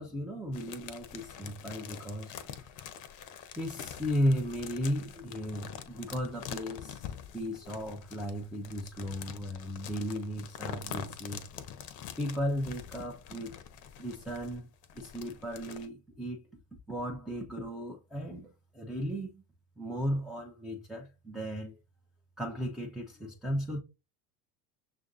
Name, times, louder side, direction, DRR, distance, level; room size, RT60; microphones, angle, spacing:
voice 1, 0.0-2.3 2.6-2.7 3.6-7.1 7.3-11.5 12.2-13.6 14.0-14.7 14.9-16.4 16.9-19.4 19.8-21.8 22.4-23.8, equal, ahead, 0.5 m, -35 dB
sound 1, 0.5-15.9, left 9 dB, 40° left, 0.7 m, -45 dB
6.3 x 2.5 x 2.6 m
hypercardioid pair, 75°, 47 cm